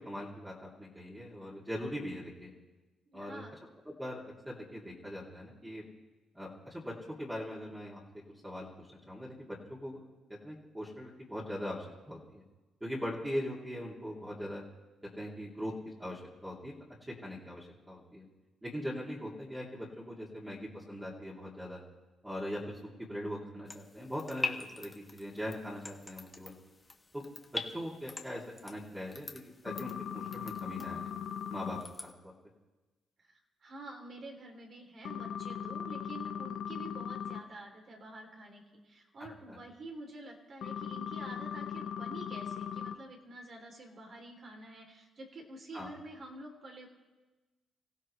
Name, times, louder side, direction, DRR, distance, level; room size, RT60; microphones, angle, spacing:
voice 1, 0.0-2.5 3.1-3.4 4.0-5.8 6.3-8.0 8.4-10.0 10.4-12.4 12.8-14.6 15.2-16.7 17.2-18.3 18.6-21.8 22.2-26.6 27.1-27.2 27.7-31.1 31.5-32.3 39.5-39.6 45.7-45.9, equal, 10° right, -6 dB, 2.9 m, -41 dB
voice 2, 3.1-3.6 33.2-46.9, right 2 dB, 50° right, 1 dB, 3.3 m, -48 dB
sound 1, 23.7-32.1, left 2 dB, 20° left, 1.5 m, -44 dB
sound 2, 29.7-31.8 35.0-37.4 40.6-42.9, left 8 dB, 70° left, 0.9 m, -39 dB
25.5 x 15.5 x 3.3 m, 1.2 s
cardioid pair, 90°, 0 cm